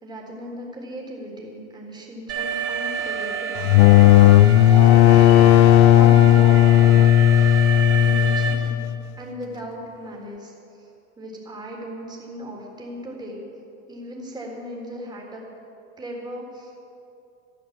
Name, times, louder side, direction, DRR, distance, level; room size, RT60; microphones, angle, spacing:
voice 1, 0.0-4.3 4.9-5.5 6.0-7.0 7.9-8.9 9.2-10.9 11.2-13.4 13.9-15.4 16.0-16.7, equal, 10° right, -2 dB, 3.7 m, -37 dB
Alarm, 2.3-8.5, right 6 dB, 40° right, 3.3 m, -29 dB
sound 1, 3.6-9.1, left 13 dB, 40° left, 0.4 m, -14 dB
13.5 x 13.5 x 7.3 m, 2.7 s
supercardioid pair, 140°, 39 cm